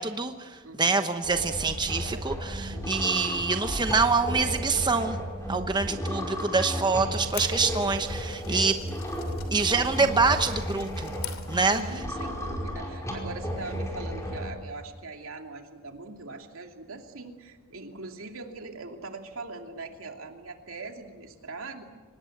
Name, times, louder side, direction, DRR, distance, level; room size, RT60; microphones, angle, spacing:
voice 1, 0.0-5.2 5.5-8.7 9.5-11.1 11.5-11.8, right 4 dB, 20° right, 7 dB, 1.0 m, -26 dB
voice 2, 0.6-1.0 2.7-3.0 5.7-6.1 8.5-8.8 11.6-21.8, right 3 dB, 80° right, 4 dB, 2.7 m, -41 dB
sound 1, 1.2-14.5, equal, 15° left, 5.1 m, -34 dB
sound 2, 7.0-12.1, left 10 dB, 80° left, 2.8 m, -44 dB
24.5 x 20.0 x 8.0 m, 1.4 s
head